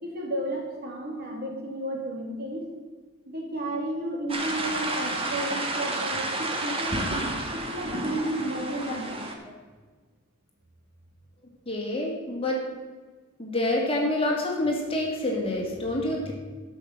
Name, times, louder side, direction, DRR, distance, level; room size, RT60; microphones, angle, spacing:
voice 1, 0.0-2.7 3.3-9.3, right 1 dB, 50° right, -1 dB, 2.8 m, -33 dB
sound 1, 4.3-9.3, right 2 dB, 25° right, 1.5 m, -30 dB
voice 2, 11.7-12.6 13.4-16.3, left 1 dB, 25° left, -2 dB, 2.6 m, -27 dB
12.0 x 6.6 x 7.5 m, 1.4 s
head